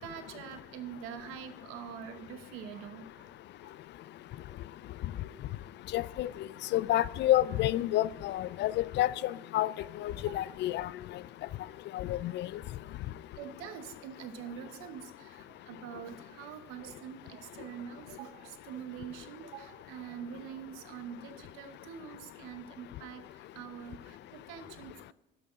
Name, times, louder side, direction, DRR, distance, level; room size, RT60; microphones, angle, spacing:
voice 1, 0.0-3.3 3.6-3.8 4.2-5.8 10.2-10.5 10.8-10.9 12.0-12.1 12.9-25.1, right 8 dB, 85° right, 1.0 m, -45 dB
voice 2, 5.9-6.3 6.7-9.7 10.0-10.9 11.9-12.5, left 14 dB, 60° left, 0.4 m, -29 dB
12.5 x 5.6 x 3.6 m
supercardioid pair, 90°, 21 cm